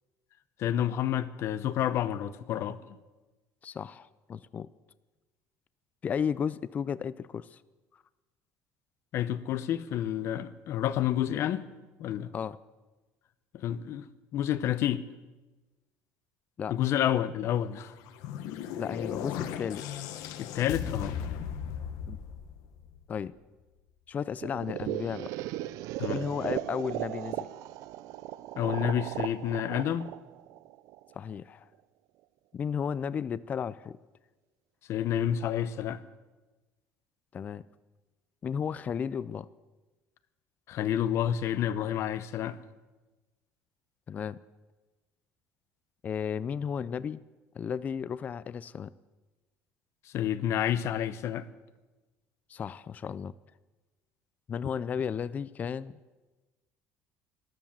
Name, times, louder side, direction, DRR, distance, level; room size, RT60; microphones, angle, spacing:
voice 1, 0.6-2.8 9.1-11.7 12.0-12.3 13.5-14.1 14.3-15.0 16.7-17.9 20.4-21.2 26.0-26.2 28.6-30.1 34.9-36.0 40.7-42.6 50.0-51.5, left 10 dB, 50° left, 0.7 m, -29 dB
voice 2, 3.6-4.7 6.0-7.6 12.3-12.6 16.6-16.7 18.8-19.8 22.1-22.2 23.1-23.3 24.1-25.3 26.1-27.5 31.1-31.7 32.5-34.0 37.3-37.6 38.4-39.5 44.1-44.4 46.0-47.2 47.6-48.9 52.5-53.3 54.5-56.0, left 7 dB, 30° left, 0.4 m, -34 dB
sound 1, 17.8-23.2, left 8 dB, 75° left, 1.2 m, -37 dB
sound 2, 24.4-31.3, right 15 dB, 75° right, 0.5 m, -37 dB
13.0 x 12.5 x 7.3 m
cardioid pair, 145°, 6 cm